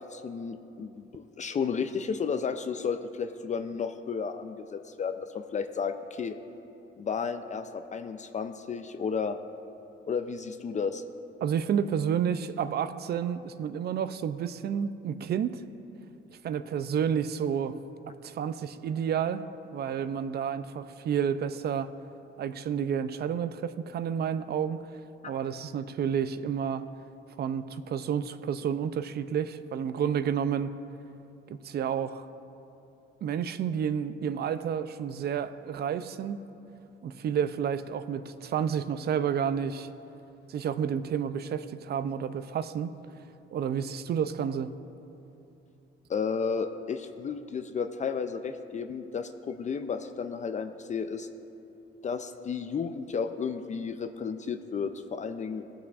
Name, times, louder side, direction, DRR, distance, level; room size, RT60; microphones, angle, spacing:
voice 1, 0.0-6.4 7.0-9.4 10.0-11.0 46.1-51.3 52.0-55.6, left 6 dB, 35° left, 8 dB, 0.4 m, -33 dB
voice 2, 11.4-15.6 16.4-17.8 18.1-19.4 19.7-21.9 22.4-24.8 25.2-26.8 27.4-30.7 31.5-32.3 33.2-36.4 37.0-39.9 40.5-42.9 43.5-44.7, right 8 dB, 55° right, 12 dB, 0.4 m, -30 dB
18.5 x 6.9 x 2.4 m, 2.8 s
cardioid pair, 90°, 20 cm